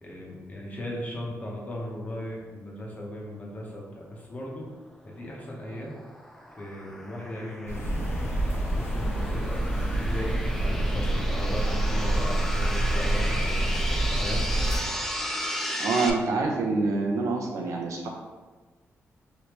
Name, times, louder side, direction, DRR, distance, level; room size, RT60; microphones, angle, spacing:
voice 1, 0.0-4.7 5.0-5.9 6.6-8.0 8.4-13.8 14.2-14.4, left 1 dB, 30° left, -2 dB, 0.8 m, -37 dB
sound 1, 5.3-16.1, equal, 5° left, 0.3 m, -35 dB
sound 2, 7.7-14.8, right 1 dB, 60° left, 0.9 m, -27 dB
voice 2, 15.8-18.1, right 3 dB, 90° right, 0 dB, 0.6 m, -26 dB
3.4 x 2.7 x 3.0 m, 1.3 s
cardioid pair, 115°, 5 cm